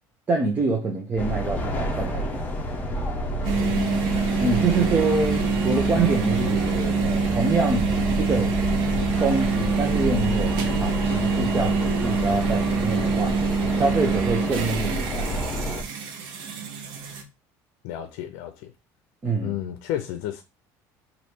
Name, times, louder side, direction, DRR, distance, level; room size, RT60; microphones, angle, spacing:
voice 1, 0.3-2.4 4.4-8.5 9.2-13.4 13.7-15.4 19.2-19.6, right 3 dB, 25° right, 0.7 m, -26 dB
sound 1, 1.2-15.8, equal, 20° left, 0.9 m, -29 dB
sound 2, 3.4-17.2, right 5 dB, 70° right, 0.8 m, -26 dB
voice 2, 3.5-4.2 4.5-4.9 17.8-18.7 19.4-20.4, left 11 dB, 80° left, 0.5 m, -33 dB
3.2 x 2.6 x 4.4 m
cardioid pair, 140°, 8 cm